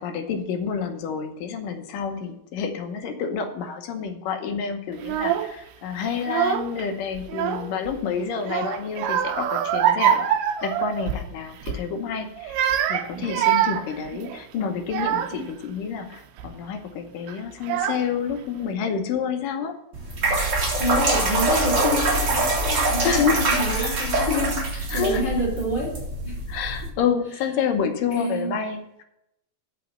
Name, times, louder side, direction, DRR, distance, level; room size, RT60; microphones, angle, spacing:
voice 1, 0.0-10.3 10.6-12.6 12.9-19.8 23.0-23.5 23.8-24.0 24.9-25.2 26.5-29.0, left 6 dB, 75° left, 6 dB, 2.5 m, -28 dB
Child speech kid speaking / Crying sobbing, 5.0-5.5 6.2-6.8 7.2-8.0 8.4-11.3 11.6-11.9 12.4-15.5 16.1-16.5 17.3-17.4 17.6-18.3, right 10 dB, 80° right, 2.3 m, -25 dB
sound 1, 19.9-26.9, right 2 dB, 35° right, 2.1 m, -24 dB
voice 2, 20.8-26.0 26.2-26.4 28.1-28.6, left 1 dB, 30° left, -4 dB, 3.4 m, -28 dB
8.3 x 6.1 x 8.1 m, 0.81 s
omnidirectional pair, 4.1 m